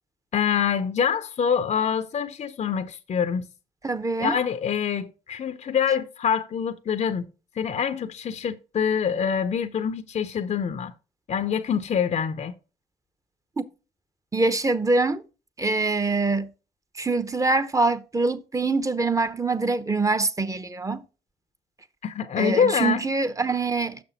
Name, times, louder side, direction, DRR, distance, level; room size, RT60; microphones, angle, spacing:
voice 1, 0.3-3.4 4.2-7.3 7.6-10.9 11.3-12.5 22.0-23.0, left 7 dB, 45° left, 0.6 m, -25 dB
voice 2, 3.8-4.4 13.6-13.7 14.3-15.2 15.6-16.5 17.0-21.0 22.4-24.0, right 3 dB, 20° right, 0.8 m, -24 dB
6.5 x 6.0 x 3.9 m
hypercardioid pair, 55°, 16 cm